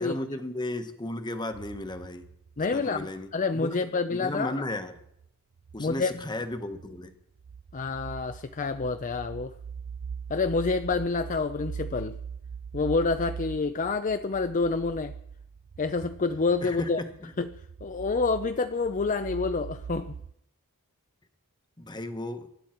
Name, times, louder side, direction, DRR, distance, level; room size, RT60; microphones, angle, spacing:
voice 1, 0.0-2.2 2.7-3.8 4.1-5.0 5.7-7.1 16.6-17.3 21.8-22.5, left 1 dB, 20° left, 8 dB, 1.2 m, -35 dB
sound 1, 1.5-3.3 4.6-5.3 5.6-20.3, right 6 dB, 65° right, 0.5 m, -42 dB
voice 2, 2.6-4.7 5.8-6.1 7.7-9.5 10.3-12.2 12.7-15.1 15.8-17.0 17.4-17.5 17.8-20.2, left 4 dB, 35° left, 10 dB, 0.5 m, -28 dB
24.0 x 11.0 x 4.4 m, 0.76 s
head